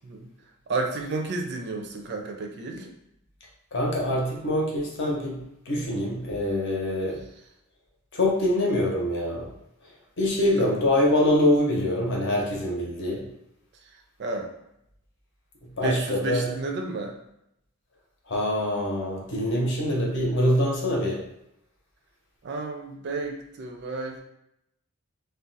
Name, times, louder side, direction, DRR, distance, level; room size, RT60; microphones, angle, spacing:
voice 1, 0.7-2.9 10.6-10.7 14.2-14.5 15.8-17.2 22.4-24.2, right 3 dB, 50° right, 3 dB, 0.4 m, -31 dB
voice 2, 3.7-5.4 5.7-7.2 8.1-9.5 9.8-13.3 15.6-16.5 18.3-21.2, left 1 dB, 55° left, -2 dB, 0.8 m, -25 dB
2.4 x 2.2 x 3.9 m, 0.80 s
head